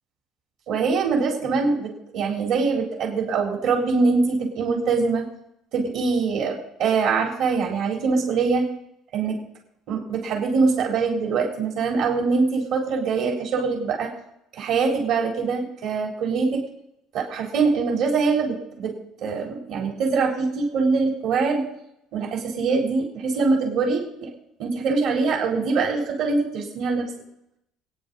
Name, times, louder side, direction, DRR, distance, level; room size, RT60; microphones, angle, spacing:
voice 1, 0.7-5.2 5.7-8.7 9.1-9.4 9.9-14.1 14.5-16.6 17.1-18.9 19.2-21.6 22.1-24.3 24.6-27.1, right 4 dB, 60° right, 0 dB, 4.0 m, -23 dB
26.0 x 9.8 x 4.2 m, 0.79 s
cardioid pair, 160°, 0 cm